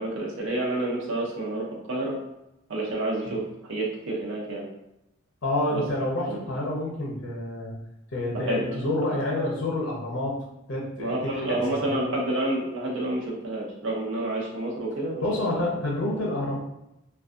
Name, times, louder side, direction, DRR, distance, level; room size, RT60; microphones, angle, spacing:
voice 1, 0.0-2.2 2.7-3.4 3.7-4.7 5.7-5.8 6.2-6.4 8.3-8.8 9.1-9.2 11.0-15.2 15.5-15.7, right 1 dB, 65° right, -3 dB, 0.6 m, -29 dB
voice 2, 5.4-7.7 8.1-10.4 10.7-12.0 15.2-16.6, left 1 dB, 60° left, -3 dB, 0.6 m, -28 dB
2.5 x 2.2 x 2.4 m, 0.87 s
head